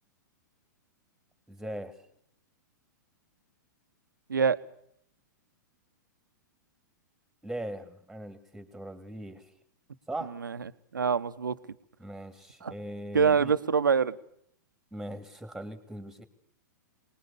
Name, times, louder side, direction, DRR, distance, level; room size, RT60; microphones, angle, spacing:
voice 1, 1.5-2.0 7.4-9.4 10.1-10.3 12.0-13.5 14.9-16.2, right 1 dB, ahead, 10 dB, 2.6 m, -40 dB
voice 2, 10.9-11.6 12.6-12.7 13.1-14.1, right 6 dB, 80° right, 12 dB, 1.0 m, -25 dB
23.5 x 20.0 x 7.0 m, 0.68 s
hypercardioid pair, 110°, 10 cm